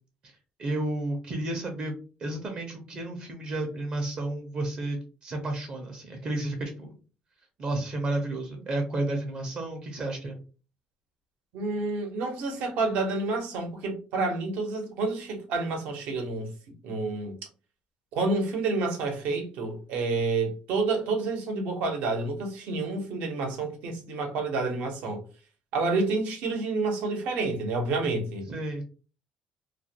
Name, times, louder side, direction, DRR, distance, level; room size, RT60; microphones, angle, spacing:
voice 1, 0.6-6.9 7.6-10.4 28.5-28.8, right 2 dB, 40° right, 0.5 m, -32 dB
voice 2, 11.5-16.5 16.8-17.3 18.1-25.2 25.7-28.4, right 3 dB, 80° right, 0.7 m, -29 dB
2.3 x 2.1 x 2.7 m
cardioid pair, 145°, 3 cm